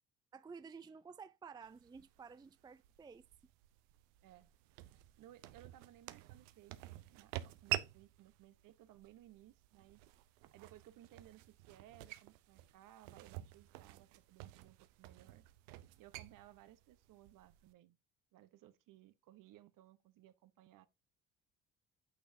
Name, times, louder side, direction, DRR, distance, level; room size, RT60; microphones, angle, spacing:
voice 1, 0.3-3.3, right 5 dB, 10° right, 0.4 m, -53 dB
sound 1, 1.6-17.7, right 15 dB, 75° right, 0.7 m, -49 dB
voice 2, 4.9-10.0 10.5-15.4 16.0-18.0 18.3-20.9, right 13 dB, 60° right, 1.0 m, -61 dB
8.6 x 6.5 x 2.7 m
hypercardioid pair, 60°, 37 cm